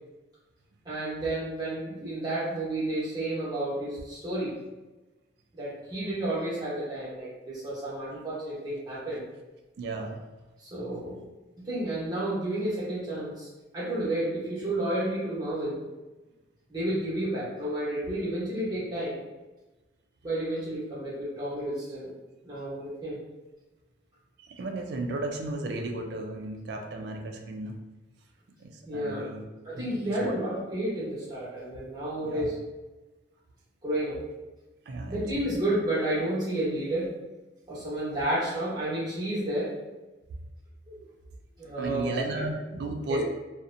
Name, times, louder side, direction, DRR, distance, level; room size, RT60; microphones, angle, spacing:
voice 1, 0.8-4.5 5.5-9.2 10.6-11.2 11.6-13.5 13.7-15.8 16.7-19.2 20.2-22.2 22.4-23.2 28.8-29.3 29.6-32.5 33.8-34.2 35.1-37.1 37.7-39.7 40.9-41.0 41.6-42.2 43.1-43.2, right 1 dB, 20° right, -9 dB, 0.8 m, -31 dB
voice 2, 9.8-10.2 24.4-27.8 28.6-29.4 29.7-30.3 32.2-32.5 34.9-35.5 41.8-43.2, right 2 dB, 60° right, 3 dB, 0.3 m, -34 dB
2.6 x 2.0 x 2.5 m, 1.1 s
head